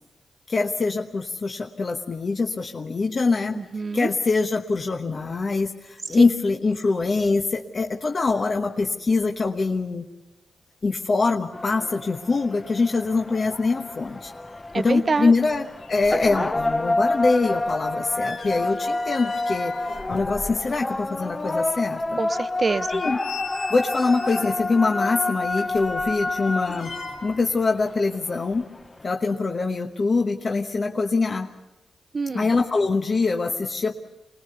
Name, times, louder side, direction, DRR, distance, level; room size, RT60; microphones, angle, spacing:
voice 1, 0.5-3.6 3.9-10.1 10.8-14.3 14.7-22.2 22.9-23.2 23.7-26.9 27.2-28.7 29.0-31.5 32.3-33.9, left 3 dB, 45° left, 3 dB, 1.1 m, -24 dB
voice 2, 3.6-4.1 14.7-15.3 22.2-22.9 32.1-32.5, right 4 dB, 45° right, 13 dB, 0.8 m, -25 dB
sound 1, 11.5-29.1, left 2 dB, 25° left, 0.8 m, -29 dB
sound 2, 15.5-15.6 15.8-16.8 17.1-21.0 21.4-21.5 22.0-22.1 22.7-24.6 25.5-27.5 27.8-27.9, left 4 dB, 80° left, 2.3 m, -39 dB
25.0 x 19.0 x 6.8 m, 1.0 s
cardioid pair, 65°, 0 cm